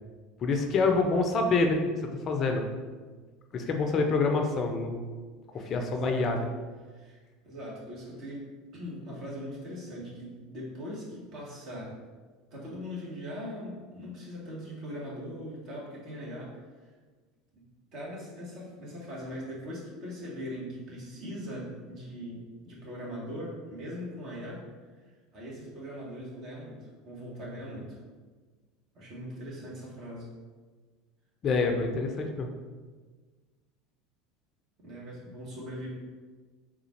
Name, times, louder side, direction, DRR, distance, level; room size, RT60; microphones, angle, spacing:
voice 1, 0.4-1.9 2.3-2.6 3.5-5.0 5.7-6.5 31.4-32.5, left 3 dB, 40° left, 4 dB, 0.5 m, -26 dB
voice 2, 5.5-6.3 6.9-7.2 7.4-11.9 12.5-16.5 17.5-17.6 17.9-24.6 25.3-28.0 28.9-30.3 34.8-35.9, equal, 50° right, -5 dB, 1.4 m, -40 dB
3.8 x 2.4 x 4.3 m, 1.4 s
figure-of-eight pair, 75°, 0 cm